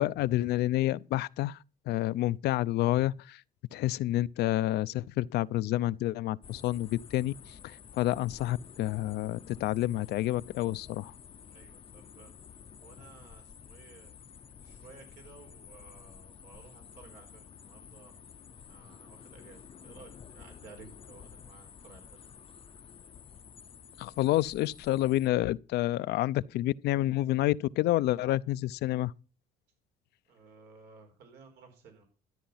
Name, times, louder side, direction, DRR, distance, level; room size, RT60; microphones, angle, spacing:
voice 1, 0.0-1.6 1.9-3.4 3.7-11.1 24.0-29.1, left 15 dB, 75° left, 0.5 m, -29 dB
sound 1, 6.4-25.3, left 7 dB, 35° left, 0.6 m, -51 dB
voice 2, 11.5-14.2 14.6-18.1 18.6-22.2 30.3-32.0, right 5 dB, 90° right, 4.3 m, -55 dB
13.0 x 9.2 x 5.6 m
cardioid pair, 110°, 17 cm